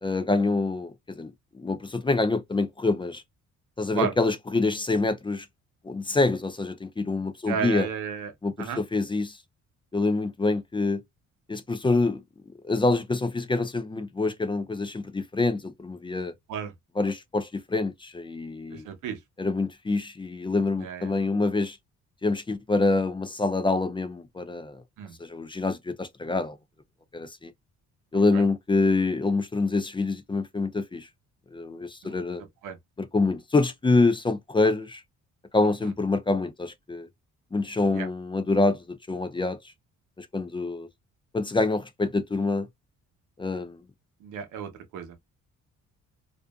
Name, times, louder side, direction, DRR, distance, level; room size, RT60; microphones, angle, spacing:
voice 1, 0.0-3.2 3.8-5.5 5.8-7.9 8.4-9.4 9.9-11.0 11.5-12.2 12.6-16.3 17.0-18.9 19.4-21.8 22.2-24.8 25.2-26.6 27.1-27.5 28.1-31.1 31.5-32.4 33.0-35.0 35.5-37.1 37.5-39.6 40.2-40.9 41.3-42.7 43.4-43.8, left 3 dB, 15° left, 0.4 m, -26 dB
voice 2, 7.5-8.3 8.6-8.8 16.5-16.7 18.7-19.2 20.8-21.1 25.0-25.2 28.1-28.4 32.0-32.2 32.6-32.8 37.9-38.1 44.2-45.2, right 7 dB, 90° right, 0.8 m, -33 dB
2.5 x 2.4 x 2.3 m
cardioid pair, 90°, 30 cm